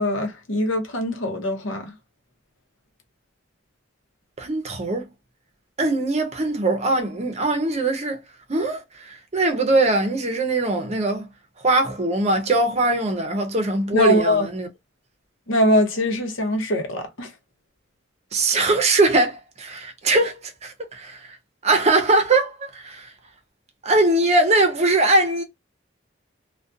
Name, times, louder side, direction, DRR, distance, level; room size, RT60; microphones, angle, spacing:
voice 1, 0.0-1.9 13.9-14.5 15.5-17.3, left 1 dB, 85° left, 0.8 m, -22 dB
voice 2, 4.4-5.1 5.8-8.2 8.5-11.3 11.6-14.7 18.3-21.4 21.6-23.1 23.8-25.4, right 2 dB, 35° right, 0.6 m, -21 dB
2.4 x 2.2 x 2.5 m
head